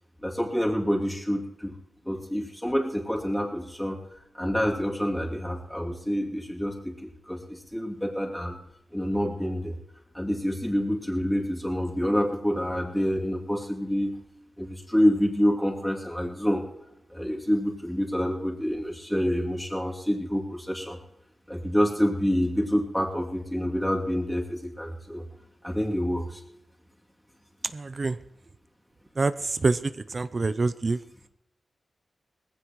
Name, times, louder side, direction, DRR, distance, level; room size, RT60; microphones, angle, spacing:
voice 1, 0.2-1.8 2.0-4.0 4.3-8.6 8.9-9.8 10.1-14.1 14.6-16.6 17.1-21.0 21.5-25.3 25.6-26.4, equal, 5° left, -1 dB, 2.7 m, -27 dB
voice 2, 27.7-28.2 29.2-29.8 30.1-31.0, right 3 dB, 45° right, 13 dB, 0.5 m, -26 dB
19.0 x 16.0 x 3.1 m, 0.82 s
cardioid pair, 65°, 0 cm